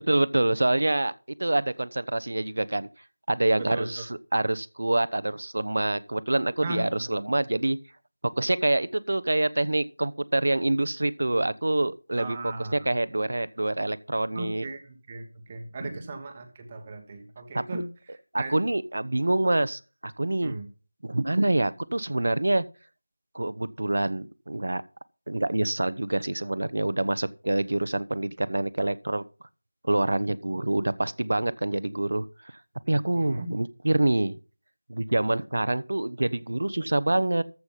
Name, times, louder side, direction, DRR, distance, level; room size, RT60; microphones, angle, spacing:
voice 1, 0.1-1.1 1.4-2.9 3.3-4.1 4.3-7.8 8.4-14.7 17.5-17.8 18.3-20.5 21.0-22.6 23.3-24.8 25.3-29.2 29.8-32.3 32.9-34.3 34.9-37.4, right 2 dB, 60° right, 0.9 m, -26 dB
voice 2, 3.6-4.1 6.6-7.2 12.2-12.9 14.3-18.6 20.4-20.7 33.2-33.6, right 2 dB, 15° right, 1.2 m, -38 dB
14.5 x 5.9 x 5.6 m
figure-of-eight pair, 175°, 0 cm